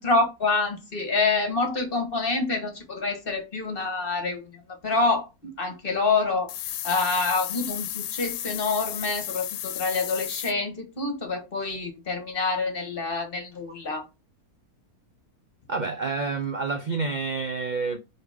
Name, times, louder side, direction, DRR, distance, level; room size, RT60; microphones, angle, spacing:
voice 1, 0.0-4.4 4.8-6.5 6.8-14.0, left 3 dB, 35° left, 1.6 m, -27 dB
sound 1, 6.5-10.5, left 12 dB, 90° left, 1.2 m, -33 dB
voice 2, 15.7-18.0, right 4 dB, 65° right, 0.4 m, -28 dB
5.0 x 4.4 x 5.0 m
omnidirectional pair, 1.7 m